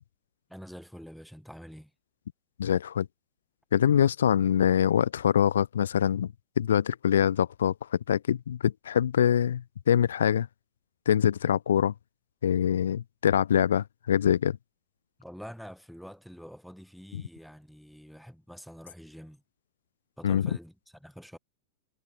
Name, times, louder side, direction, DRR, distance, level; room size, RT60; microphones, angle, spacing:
voice 1, 0.5-1.9 15.2-19.4 20.2-21.4, equal, ahead, 3.2 m, -46 dB
voice 2, 2.6-3.1 3.7-6.3 6.6-7.7 8.1-10.5 11.1-11.9 12.4-14.6 20.2-20.4, left 9 dB, 85° left, 0.8 m, -24 dB
hypercardioid pair, 110°, 0 cm